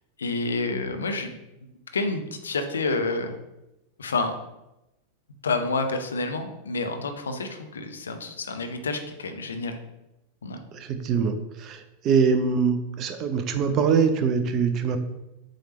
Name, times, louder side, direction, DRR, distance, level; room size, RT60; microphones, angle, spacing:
voice 1, 0.2-1.3 1.9-3.4 4.0-4.3 5.4-9.7 10.4-10.6, left 3 dB, 70° left, 6 dB, 0.7 m, -29 dB
voice 2, 10.7-15.0, right 6 dB, 35° right, 9 dB, 0.7 m, -23 dB
7.6 x 3.4 x 4.2 m, 0.93 s
figure-of-eight pair, 90°, 0 cm